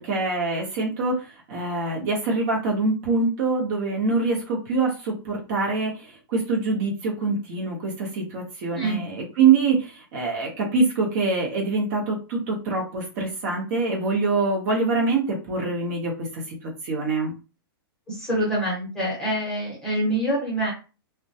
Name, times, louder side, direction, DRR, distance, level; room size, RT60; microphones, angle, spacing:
voice 1, 0.0-17.3, right 4 dB, 40° right, -1 dB, 0.8 m, -24 dB
voice 2, 18.1-20.7, right 1 dB, 5° left, -5 dB, 0.9 m, -25 dB
2.2 x 2.1 x 2.7 m, 0.32 s
hypercardioid pair, 160°, 13 cm